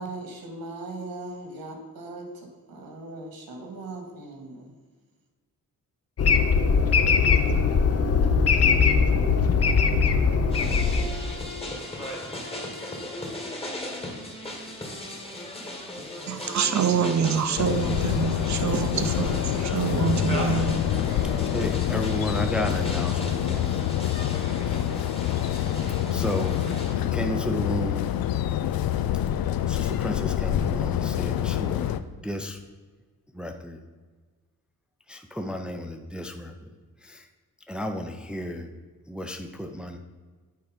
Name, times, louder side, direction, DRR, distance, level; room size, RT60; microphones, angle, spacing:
voice 1, 0.0-4.7, right 2 dB, 80° right, 2 dB, 1.9 m, -39 dB
sound 1, 6.2-11.6, left 5 dB, 45° left, 0.6 m, -21 dB
sound 2, 10.5-26.9, left 1 dB, 15° left, 1.3 m, -37 dB
voice 2, 16.3-20.7, right 7 dB, 55° right, 9 dB, 0.7 m, -26 dB
sound 3, 17.6-32.0, left 11 dB, 90° left, 0.5 m, -26 dB
voice 3, 21.5-23.7 26.1-26.6 27.1-28.1 29.7-32.0 32.2-32.6 33.3-33.8 35.1-36.5 37.0-37.2 37.7-38.7 39.1-40.0, left 1 dB, 5° right, 5 dB, 0.5 m, -32 dB
8.5 x 4.7 x 5.1 m, 1.4 s
wide cardioid pair, 135°, 35 cm